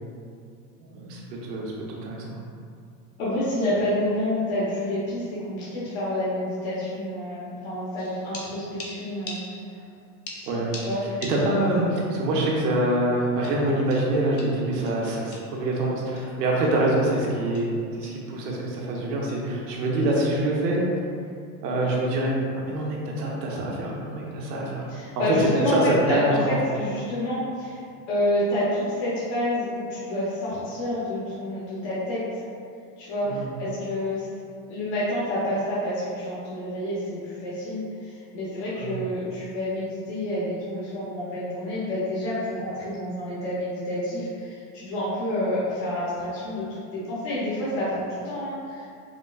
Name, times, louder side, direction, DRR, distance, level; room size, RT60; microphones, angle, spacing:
voice 1, 0.8-2.4 10.5-10.8 11.0-20.8 21.6-24.9 25.2-26.6 33.2-33.5 38.8-38.9, right 1 dB, 85° right, -3 dB, 0.9 m, -25 dB
voice 2, 3.2-9.4 10.3-10.5 10.8-11.0 24.9-27.8 28.1-32.2 33.0-34.3 34.6-48.9, left 1 dB, 55° left, -9 dB, 1.0 m, -28 dB
sound 1, 8.0-9.9 10.3-11.8 12.2-12.3 13.4-15.6 16.2-16.3 16.6-16.8 17.1-17.3 17.5-17.8 18.0-18.3 19.3-19.5, left 3 dB, 35° left, 0.4 m, -42 dB
4.8 x 2.2 x 2.3 m, 2.4 s
supercardioid pair, 125°, 47 cm